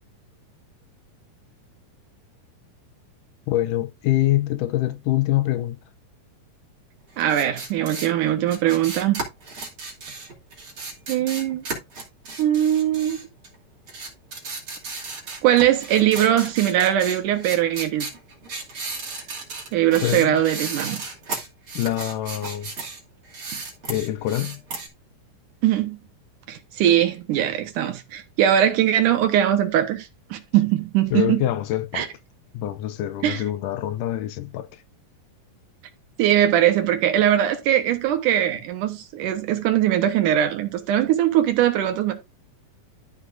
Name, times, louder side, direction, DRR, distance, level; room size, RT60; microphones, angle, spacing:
voice 1, 3.5-5.8 20.0-20.4 21.8-22.7 23.9-24.6 31.1-32.1 32.5-34.8, left 14 dB, 80° left, 2.1 m, -25 dB
sound 1, 7.2-13.6 13.9-23.0 23.3-24.9, right 3 dB, 40° right, 3.2 m, -34 dB
voice 2, 7.2-9.2 11.1-11.7 12.4-13.2 15.4-18.1 19.7-21.0 25.6-26.0 26.5-31.4 31.9-32.1 33.2-33.4 36.2-42.1, right 11 dB, 75° right, 2.5 m, -21 dB
13.0 x 6.1 x 2.6 m
omnidirectional pair, 4.0 m